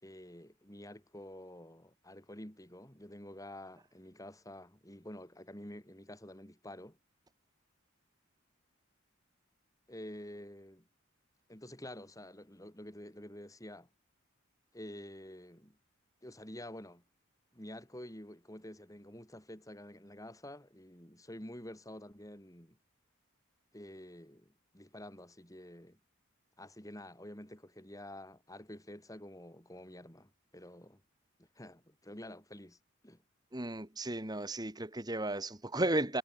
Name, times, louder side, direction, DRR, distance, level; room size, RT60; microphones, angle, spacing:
voice 1, 0.0-7.0 9.9-10.9 11.5-13.9 14.7-15.8 16.2-17.0 17.5-22.8 23.7-26.0 26.6-31.0 31.4-32.8 33.0-33.2, left 1 dB, 15° left, 4.5 m, -49 dB
voice 2, 33.5-36.2, right 1 dB, 20° right, 1.8 m, -34 dB
head